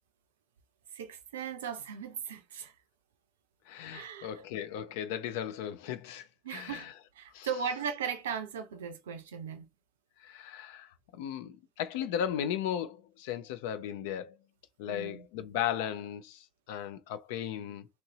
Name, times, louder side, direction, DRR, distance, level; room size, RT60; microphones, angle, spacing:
voice 1, 0.9-2.7 3.9-4.3 6.4-6.9 7.2-9.7 14.9-15.3, right 7 dB, 80° right, 0.4 m, -37 dB
voice 2, 3.7-6.9 7.3-7.5 10.2-14.4 14.8-17.9, left 10 dB, 70° left, 0.3 m, -36 dB
3.0 x 2.6 x 2.8 m
figure-of-eight pair, 50°, 0 cm